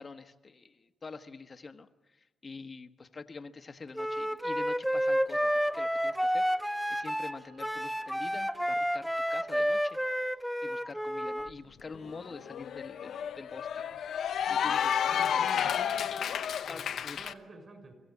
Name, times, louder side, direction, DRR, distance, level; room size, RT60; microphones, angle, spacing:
voice 1, 0.0-10.3 10.6-13.8 14.5-15.5 16.6-17.2, left 4 dB, 40° left, 8 dB, 1.3 m, -46 dB
Wind instrument woodwind instrument, 4.0-11.5, equal, ahead, 0.7 m, -30 dB
Bowed string instrument, 5.3-10.4, equal, 85° right, 2.7 m, -59 dB
Cheering / Applause, 11.5-11.6 11.9-17.3, left 8 dB, 75° left, 0.9 m, -31 dB
voice 2, 15.0-16.5 16.8-16.9 17.2-17.9, right 3 dB, 45° right, 6 dB, 6.0 m, -49 dB
24.0 x 15.5 x 8.5 m, 1.2 s
supercardioid pair, 60°, 0 cm